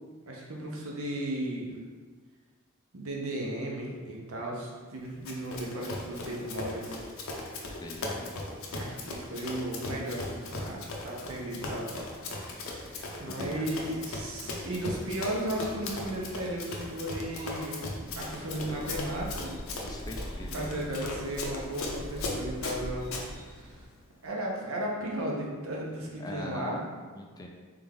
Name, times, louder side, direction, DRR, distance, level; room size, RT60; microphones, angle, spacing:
voice 1, 0.3-1.7 2.9-7.0 8.7-11.9 12.2-17.9 18.1-19.5 20.5-23.1 23.6-23.8 24.2-26.8, right 1 dB, 75° right, -2 dB, 0.9 m, -35 dB
Run, 5.2-23.3, left 2 dB, 70° left, 0.7 m, -38 dB
voice 2, 13.3-13.7 19.8-20.9 26.2-26.9 27.1-27.5, left 1 dB, 20° left, 1 dB, 0.3 m, -41 dB
sound 1, 13.7-23.9, equal, 25° right, 1.3 m, -44 dB
3.6 x 3.4 x 3.5 m, 1.5 s
head